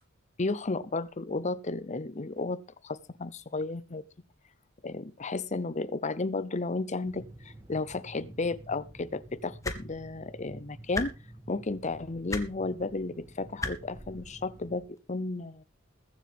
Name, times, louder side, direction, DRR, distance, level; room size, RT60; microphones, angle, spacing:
voice 1, 0.4-4.0 4.8-11.2 11.5-15.6, left 3 dB, 35° left, 0.7 m, -33 dB
sound 1, 7.0-14.8, right 1 dB, 15° right, 2.3 m, -50 dB
sound 2, 9.6-9.8 10.9-11.1 12.3-12.5 13.6-13.7 15.0-15.1, left 2 dB, 15° left, 1.4 m, -32 dB
21.5 x 7.5 x 3.5 m
head